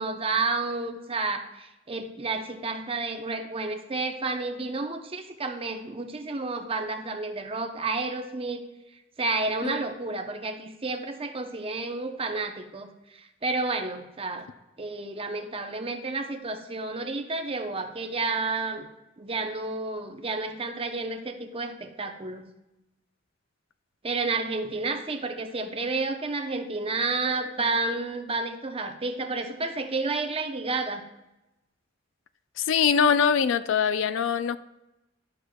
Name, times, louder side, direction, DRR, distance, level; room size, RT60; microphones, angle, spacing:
voice 1, 0.0-8.6 9.2-12.9 13.4-14.5 14.8-18.9 19.2-22.4 24.0-31.0, right 3 dB, 30° right, 6 dB, 0.7 m, -30 dB
voice 2, 32.6-34.6, left 7 dB, 70° left, 12 dB, 0.4 m, -23 dB
12.0 x 6.3 x 2.3 m, 0.95 s
head